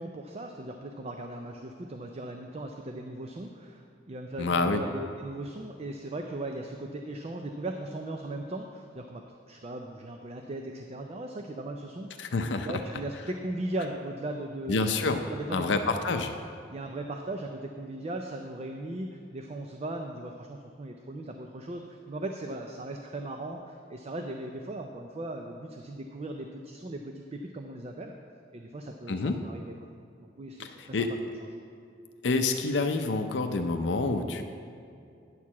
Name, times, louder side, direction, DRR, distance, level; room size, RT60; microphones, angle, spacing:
voice 1, 0.0-12.3 12.6-14.8 15.2-15.6 16.7-28.1 28.5-29.9 30.2-31.0 31.4-31.5, right 1 dB, 35° right, 4 dB, 0.4 m, -38 dB
voice 2, 4.4-4.8 12.2-12.7 14.7-15.2 15.5-16.3 29.1-29.4 30.6-31.1 32.2-34.4, left 3 dB, 70° left, 6 dB, 0.5 m, -27 dB
9.7 x 4.6 x 7.1 m, 2.5 s
head